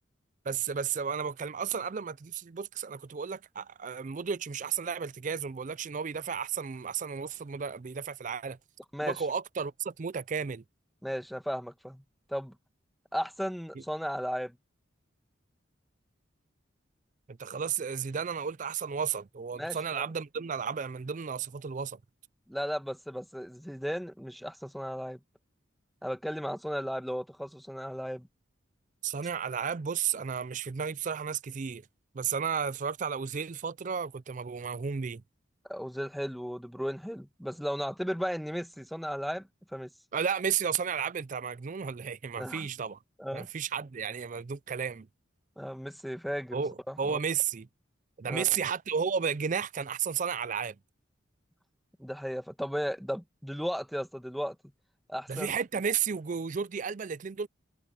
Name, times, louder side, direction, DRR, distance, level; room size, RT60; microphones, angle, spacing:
voice 1, 0.5-8.6 9.0-10.6 13.7-13.8 17.3-22.0 29.0-31.8 32.1-35.2 40.1-43.0 43.3-45.1 46.5-47.7 48.2-50.8 55.3-57.5, right 6 dB, 40° right, 0.4 m, -33 dB
voice 2, 11.0-12.0 12.3-12.5 13.1-14.6 19.5-20.1 22.5-25.2 26.0-28.3 35.7-39.9 42.4-42.7 43.2-43.5 45.6-46.6 46.9-47.2 48.3-48.4 52.0-54.6 55.1-55.5, equal, ahead, 1.3 m, -35 dB
head